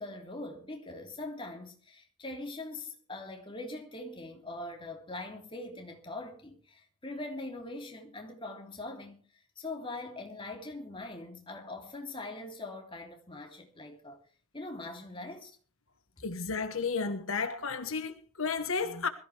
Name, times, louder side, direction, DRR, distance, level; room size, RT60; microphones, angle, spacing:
voice 1, 0.0-9.3 9.6-14.2 14.5-15.6, left 2 dB, 25° left, 3.1 m, -42 dB
voice 2, 16.2-19.1, left 4 dB, 75° left, 1.3 m, -32 dB
21.5 x 14.5 x 3.4 m
head